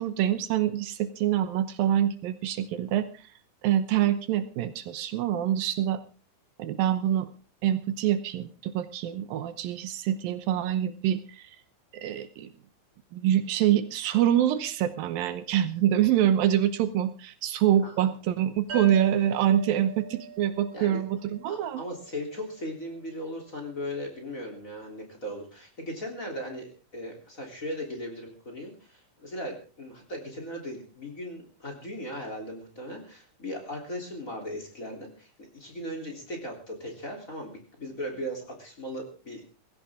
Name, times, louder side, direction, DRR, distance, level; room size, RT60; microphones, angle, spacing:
voice 1, 0.0-3.2 3.6-6.0 6.6-7.3 7.6-11.5 11.9-12.5 13.1-21.8, right 11 dB, 75° right, 11 dB, 2.6 m, -25 dB
voice 2, 17.8-18.2 20.7-21.0 21.5-39.4, equal, 20° left, 1 dB, 3.5 m, -38 dB
sound 1, 18.7-22.1, right 7 dB, 45° right, 3.9 m, -40 dB
18.5 x 16.0 x 3.7 m, 0.36 s
omnidirectional pair, 4.2 m